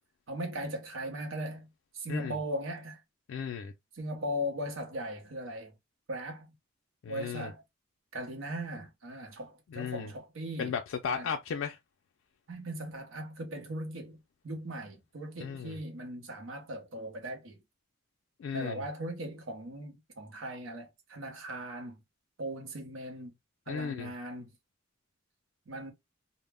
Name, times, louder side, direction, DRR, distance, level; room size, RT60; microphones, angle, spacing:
voice 1, 0.3-1.7 1.9-3.0 3.9-5.7 6.1-6.5 7.1-7.6 8.1-10.7 11.1-11.3 12.5-14.2 14.4-17.6 18.5-22.0 22.4-23.3 23.7-24.5 25.7-25.9, equal, 90° right, 0.8 m, -38 dB
voice 2, 3.3-3.7 7.0-7.5 9.7-10.1 10.6-11.8 15.4-15.8 18.4-18.8 23.7-24.1, left 6 dB, 75° left, 0.3 m, -35 dB
2.1 x 2.0 x 3.3 m
head